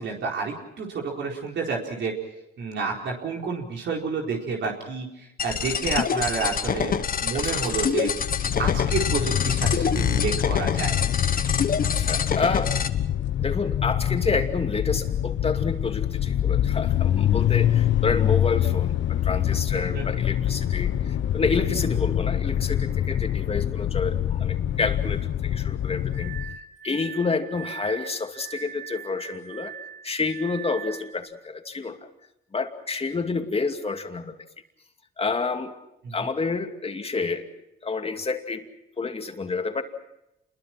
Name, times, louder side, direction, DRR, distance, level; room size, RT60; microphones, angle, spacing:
voice 1, 0.0-2.2 2.6-8.1 8.6-11.1 11.4-11.5 19.9-20.0 36.0-36.2, right 4 dB, 65° right, 0 dB, 4.4 m, -29 dB
sound 1, 5.4-12.9, left 7 dB, 45° left, 1.4 m, -26 dB
voice 2, 7.3-7.7 11.9-12.8 13.4-29.7 30.0-32.0 32.5-34.4 35.2-35.7 36.1-37.5 37.8-38.7 39.0-39.8, left 4 dB, 30° left, 5 dB, 2.6 m, -29 dB
sound 2, 8.2-26.6, left 11 dB, 65° left, 1.0 m, -25 dB
Glass, 26.1-31.1, right 10 dB, 85° right, 4.8 m, -40 dB
28.0 x 22.0 x 6.0 m, 0.87 s
cardioid pair, 90°, 20 cm